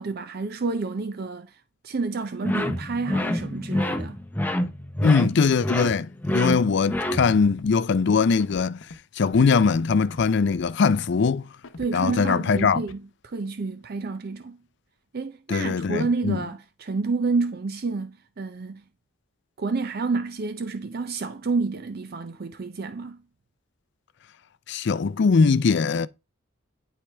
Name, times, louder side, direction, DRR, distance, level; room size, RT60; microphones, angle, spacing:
voice 1, 0.0-4.2 11.8-14.6 15.1-18.8 19.6-23.2, right 4 dB, 45° right, 0.5 m, -29 dB
sound 1, 2.4-7.6, left 1 dB, 10° left, 0.6 m, -28 dB
voice 2, 5.0-8.8 9.2-11.5 11.9-12.8 15.5-16.4 24.7-26.1, left 5 dB, 55° left, 0.4 m, -21 dB
Scratching (performance technique), 6.5-6.6 6.8-7.0 7.3-7.7 8.4-9.0 9.3-9.8 10.0-10.3 10.5-10.9 11.6-12.2 12.6-12.9, left 2 dB, 75° left, 0.9 m, -43 dB
9.9 x 4.5 x 3.3 m
head